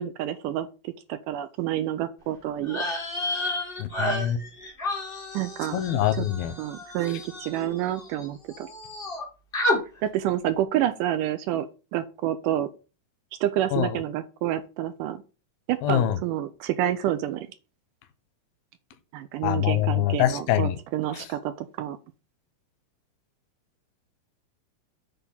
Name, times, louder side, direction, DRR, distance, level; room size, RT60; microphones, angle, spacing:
voice 1, 0.0-2.9 5.3-5.8 6.2-6.3 6.6-8.7 10.0-11.7 11.9-12.7 13.4-15.2 15.7-17.5 19.1-22.0, right 12 dB, 80° right, 2.0 m, -28 dB
sound 1, 2.6-8.3 8.5-9.2 9.5-9.8, left 1 dB, 35° left, 0.8 m, -31 dB
voice 2, 3.8-4.4 5.7-6.5 13.7-14.0 15.8-16.2 19.4-20.8 21.1-21.3, left 11 dB, 90° left, 2.6 m, -24 dB
8.1 x 3.7 x 5.6 m
omnidirectional pair, 4.2 m